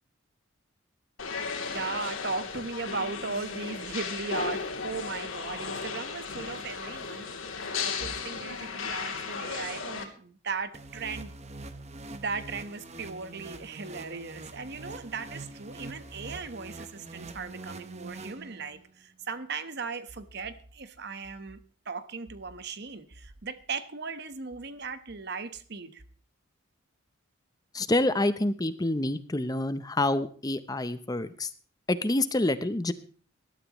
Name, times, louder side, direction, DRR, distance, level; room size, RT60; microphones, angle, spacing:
sound 1, 1.2-10.0, left 5 dB, 80° left, 2.9 m, -35 dB
voice 1, 1.7-11.3 12.1-21.6 21.8-26.0, right 4 dB, 55° right, 1.2 m, -37 dB
sound 2, 10.7-18.9, right 2 dB, 35° right, 1.0 m, -44 dB
voice 2, 27.7-31.5 31.9-32.9, left 2 dB, 20° left, 0.7 m, -27 dB
20.0 x 12.5 x 3.1 m
head